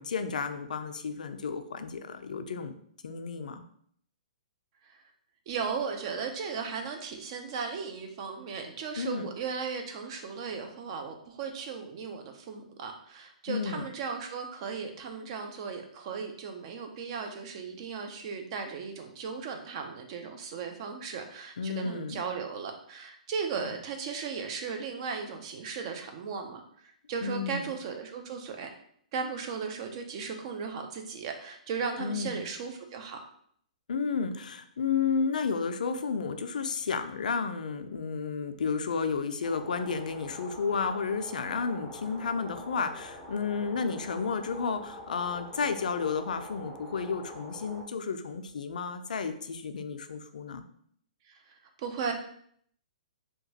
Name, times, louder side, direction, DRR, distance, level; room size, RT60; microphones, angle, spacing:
voice 1, 0.0-2.8 3.0-3.6 9.0-9.3 13.5-13.9 21.6-22.2 27.2-27.7 32.0-32.4 33.9-50.6, left 5 dB, 75° left, 8 dB, 0.3 m, -32 dB
voice 2, 5.5-28.7 29.1-33.2 51.3-52.1, right 5 dB, 45° right, 5 dB, 0.5 m, -36 dB
sound 1, 39.4-47.8, equal, ahead, 0.6 m, -46 dB
2.8 x 2.2 x 2.7 m, 0.64 s
hypercardioid pair, 130°, 4 cm